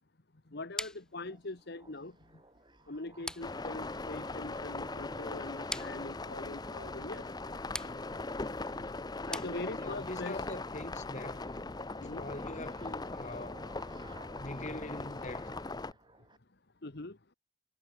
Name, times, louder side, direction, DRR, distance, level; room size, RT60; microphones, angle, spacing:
voice 1, 0.5-2.4 2.9-7.3 9.3-10.4 12.0-12.2 16.8-17.2, left 2 dB, 50° left, 1.2 m, -42 dB
sound 1, 0.8-10.1, left 1 dB, 5° left, 1.5 m, -46 dB
sound 2, 1.1-16.4, right 2 dB, 20° right, 5.9 m, -59 dB
sound 3, 3.4-15.9, left 3 dB, 20° left, 0.6 m, -40 dB
voice 2, 9.7-11.5 12.0-13.7 14.3-15.6, left 1 dB, 35° left, 3.0 m, -43 dB
head